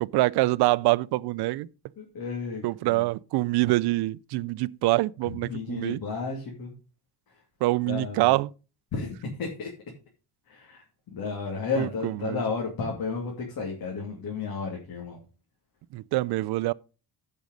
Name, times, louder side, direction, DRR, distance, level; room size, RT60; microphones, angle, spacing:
voice 1, 0.0-1.7 2.6-6.0 7.6-8.5 11.8-12.4 15.9-16.7, right 19 dB, 65° right, 0.5 m, -25 dB
voice 2, 2.0-3.0 5.4-6.7 7.3-7.4 7.9-8.3 8.9-9.7 10.5-10.8 11.1-15.2, left 4 dB, 55° left, 2.5 m, -33 dB
11.0 x 5.4 x 5.3 m
cardioid pair, 140°, 42 cm